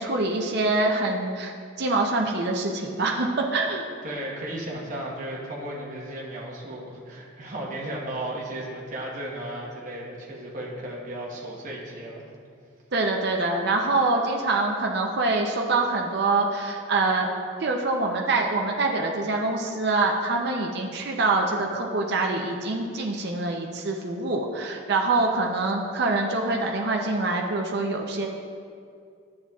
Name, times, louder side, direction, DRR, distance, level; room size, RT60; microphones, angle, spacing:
voice 1, 0.0-3.8 12.9-17.3 17.6-28.3, right 3 dB, 55° right, 1 dB, 0.6 m, -25 dB
voice 2, 4.0-12.3, right 1 dB, 40° right, -3 dB, 1.2 m, -35 dB
10.5 x 7.4 x 2.4 m, 2.3 s
head